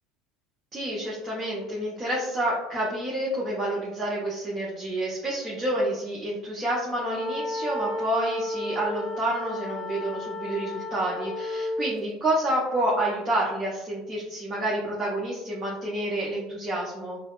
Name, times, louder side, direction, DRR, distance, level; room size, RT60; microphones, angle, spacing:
voice 1, 0.7-17.2, right 1 dB, 20° right, -6 dB, 1.0 m, -29 dB
sound 1, 7.0-11.9, left 1 dB, 50° left, 0.5 m, -32 dB
4.7 x 2.0 x 2.4 m, 0.90 s
hypercardioid pair, 85°, 0 cm